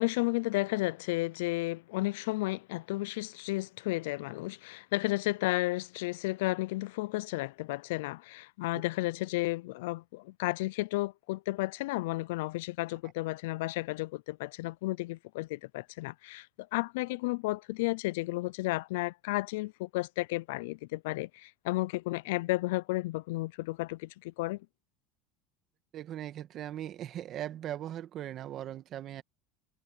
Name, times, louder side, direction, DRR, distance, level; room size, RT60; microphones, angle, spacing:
voice 1, 0.0-24.6, left 21 dB, 80° left, 0.4 m, -33 dB
voice 2, 25.9-29.2, right 11 dB, 45° right, 1.7 m, -39 dB
supercardioid pair, 120°, 0 cm